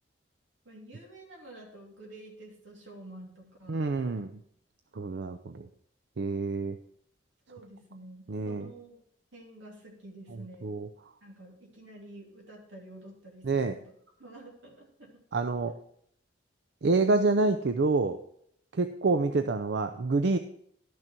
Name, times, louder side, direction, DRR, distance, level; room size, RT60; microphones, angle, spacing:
voice 1, 0.6-3.9 7.5-9.0 9.3-10.7 11.2-13.9 14.2-15.2 19.3-19.5, right 1 dB, 85° right, -1 dB, 3.0 m, -49 dB
voice 2, 3.7-4.3 4.9-5.7 6.2-6.8 8.3-8.7 10.6-10.9 13.5-13.7 15.3-15.7 16.8-18.2 18.7-20.4, right 3 dB, 60° right, 8 dB, 0.5 m, -27 dB
12.0 x 6.3 x 4.4 m, 0.68 s
head